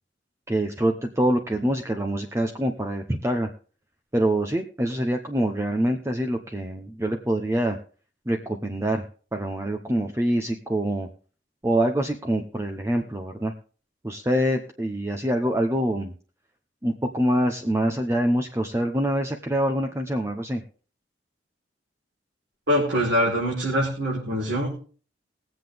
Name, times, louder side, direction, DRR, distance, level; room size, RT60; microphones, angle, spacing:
voice 1, 0.5-3.5 4.1-7.8 8.3-9.0 9.3-11.1 11.6-13.5 14.0-16.1 16.8-20.6, right 1 dB, 15° right, 3 dB, 0.8 m, -25 dB
voice 2, 22.7-24.8, equal, 75° right, -5 dB, 4.4 m, -24 dB
21.0 x 7.8 x 3.5 m, 0.40 s
head